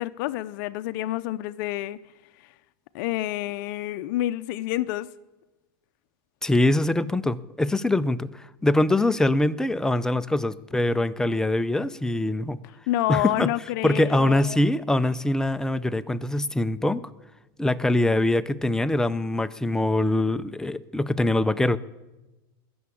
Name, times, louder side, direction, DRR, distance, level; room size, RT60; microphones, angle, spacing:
voice 1, 0.0-2.0 2.9-5.1 12.9-14.6, left 15 dB, 60° left, 0.6 m, -28 dB
voice 2, 6.4-12.6 13.1-13.5 13.8-17.0 17.6-21.8, left 1 dB, 5° left, 0.5 m, -23 dB
20.5 x 7.1 x 8.5 m
supercardioid pair, 135°, 12 cm